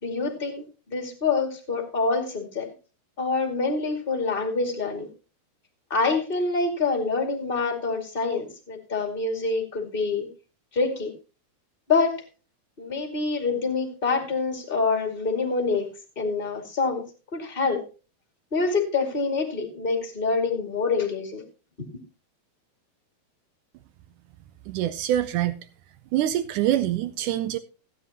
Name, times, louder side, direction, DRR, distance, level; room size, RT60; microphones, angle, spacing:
voice 1, 0.0-2.7 3.2-5.1 5.9-10.3 10.7-11.1 11.9-12.1 12.8-15.9 16.1-17.0 17.3-17.8 18.5-21.4 21.8-21.9, left 4 dB, 20° left, 3 dB, 1.7 m, -26 dB
voice 2, 24.7-25.5 26.1-27.6, right 12 dB, 85° right, 12 dB, 1.8 m, -25 dB
16.5 x 10.0 x 2.9 m, 0.35 s
omnidirectional pair, 4.3 m